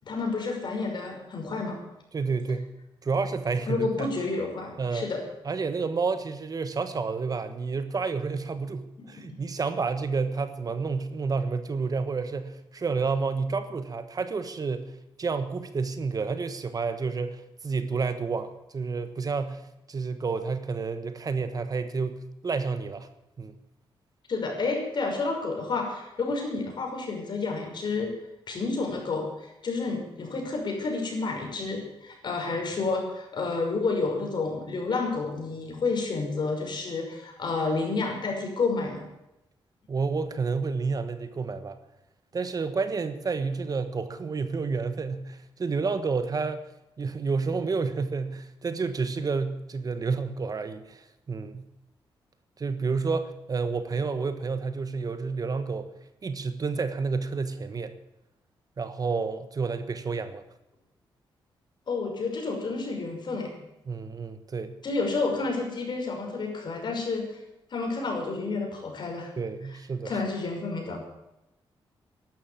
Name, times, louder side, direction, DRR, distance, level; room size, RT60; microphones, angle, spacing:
voice 1, 0.0-1.8 3.7-5.2 9.1-9.3 24.3-28.1 28.5-39.1 61.9-63.5 64.8-67.3 67.7-69.3 70.0-71.0, left 3 dB, 55° left, 2 dB, 5.8 m, -30 dB
voice 2, 2.1-2.6 3.0-4.1 4.8-5.1 5.4-14.9 15.2-19.6 19.9-23.1 23.4-23.5 39.9-41.8 42.3-46.6 47.0-51.7 52.6-55.9 56.2-57.9 58.8-60.4 63.9-64.7 69.4-70.1, right 4 dB, 40° right, 10 dB, 1.4 m, -30 dB
12.5 x 11.5 x 8.8 m, 0.90 s
cardioid pair, 85°, 9 cm